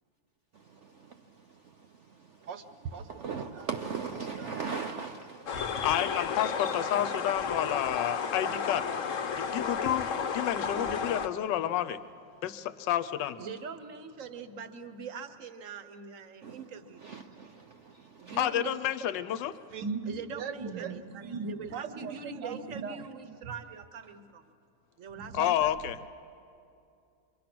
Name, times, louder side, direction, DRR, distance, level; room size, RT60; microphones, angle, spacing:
voice 1, 0.5-2.5 3.0-5.9 16.4-18.4, right 5 dB, 85° right, 0.6 m, -40 dB
voice 2, 2.9-3.7 4.4-4.5 19.7-23.5 25.2-25.5, right 5 dB, 70° right, 1.4 m, -39 dB
sound 1, 5.5-11.3, left 6 dB, 50° left, 1.0 m, -32 dB
voice 3, 5.8-8.8 9.4-10.1 10.3-12.0 12.4-13.4 18.4-19.5 25.3-26.0, left 12 dB, 70° left, 1.3 m, -30 dB
voice 4, 13.4-17.1 18.2-18.8 20.0-24.5 25.0-25.5, right 6 dB, 50° right, 1.1 m, -43 dB
26.5 x 24.0 x 6.0 m
omnidirectional pair, 2.1 m